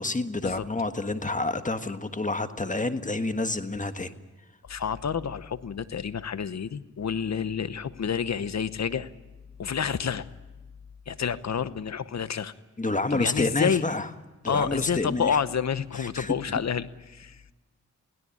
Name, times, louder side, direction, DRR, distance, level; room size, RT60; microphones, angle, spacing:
voice 1, 0.0-4.1 12.8-14.1 14.4-15.4 16.0-16.3, left 2 dB, 25° left, 9 dB, 1.5 m, -28 dB
voice 2, 4.6-9.1 9.6-10.3 11.1-12.5 13.1-13.9 14.5-17.5, left 7 dB, 60° left, 15 dB, 1.0 m, -29 dB
22.0 x 17.0 x 8.6 m, 1.2 s
cardioid pair, 60°, 30 cm